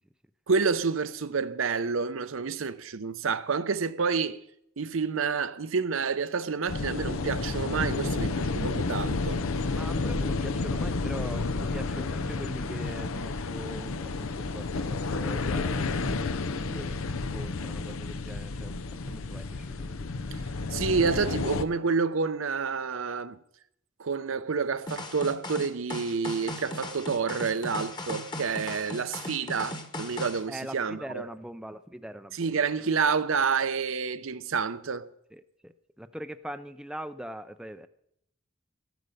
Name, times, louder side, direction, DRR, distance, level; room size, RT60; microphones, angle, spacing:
voice 1, 0.5-4.4 4.8-9.4 20.3-20.4 20.7-23.4 24.0-31.3 32.3-35.1, right 5 dB, 75° right, 0.7 m, -29 dB
sound 1, 6.7-21.6, left 3 dB, 85° left, 0.7 m, -31 dB
voice 2, 9.7-20.1 30.5-32.7 35.3-37.9, equal, 5° right, 0.4 m, -42 dB
sound 2, 24.9-30.4, left 2 dB, 20° left, 1.2 m, -37 dB
14.0 x 9.4 x 6.8 m
head